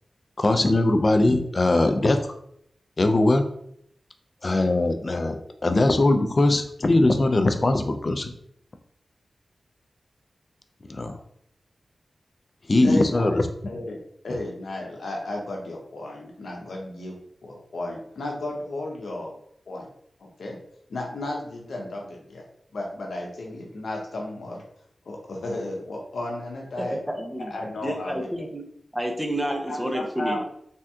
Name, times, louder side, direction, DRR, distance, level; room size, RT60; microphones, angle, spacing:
voice 1, 0.4-2.2 3.0-3.4 4.4-8.3 10.9-11.2 12.7-13.5, left 2 dB, 45° left, 7 dB, 0.4 m, -21 dB
voice 2, 12.8-13.4 13.7-17.2 17.4-19.4 19.7-19.9 20.2-20.6 20.9-22.4 22.7-24.6 25.1-27.0 27.5-28.5 29.7-30.4, left 1 dB, 80° left, 0 dB, 0.6 m, -33 dB
voice 3, 26.8-27.5 27.8-28.6 28.9-30.4, right 1 dB, 10° right, 3 dB, 0.6 m, -29 dB
3.4 x 2.6 x 2.3 m, 0.69 s
cardioid pair, 55°, 0 cm